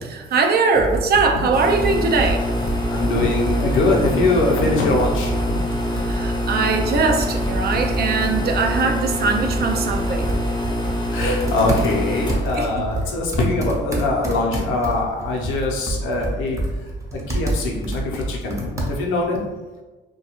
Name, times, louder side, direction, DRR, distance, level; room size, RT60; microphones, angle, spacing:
voice 1, 0.1-2.5 5.9-10.3 12.5-12.8, right 4 dB, 50° right, 4 dB, 0.4 m, -21 dB
Computer keyboard, 0.7-19.3, right 1 dB, 15° right, 0.6 m, -28 dB
sound 1, 1.5-13.9, left 1 dB, 20° left, 0.5 m, -25 dB
voice 2, 2.9-5.6 11.1-16.6 17.3-19.4, left 2 dB, 85° left, -1 dB, 0.6 m, -22 dB
2.4 x 2.2 x 2.9 m, 1.2 s
cardioid pair, 90°, 20 cm